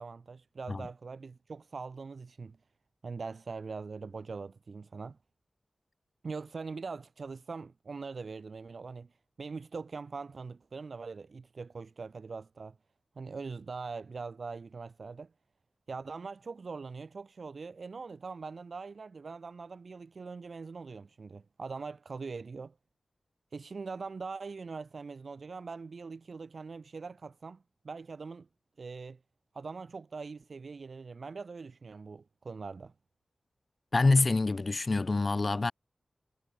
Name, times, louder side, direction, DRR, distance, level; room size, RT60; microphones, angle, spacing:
voice 1, 0.0-2.6 3.0-5.2 6.2-12.8 13.2-15.3 15.9-22.7 23.5-28.5 28.8-29.2 29.5-32.9, right 4 dB, 65° right, 1.9 m, -42 dB
voice 2, 33.9-35.7, left 3 dB, 40° left, 0.9 m, -26 dB
wide cardioid pair, 85°, 0 cm